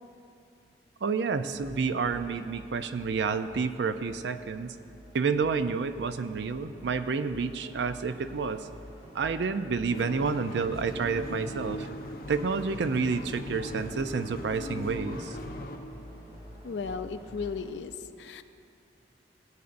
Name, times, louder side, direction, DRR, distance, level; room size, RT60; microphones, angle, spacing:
voice 1, 1.0-4.8 5.1-8.7 9.1-11.9 12.3-15.4, right 5 dB, 80° right, 11 dB, 0.4 m, -29 dB
sound 1, 1.5-17.7, equal, 40° right, 2.7 m, -49 dB
sound 2, 9.9-15.8, left 1 dB, 55° left, 0.7 m, -39 dB
voice 2, 16.6-18.4, left 5 dB, 90° left, 11 dB, 0.5 m, -36 dB
17.0 x 8.2 x 2.6 m, 2.6 s
head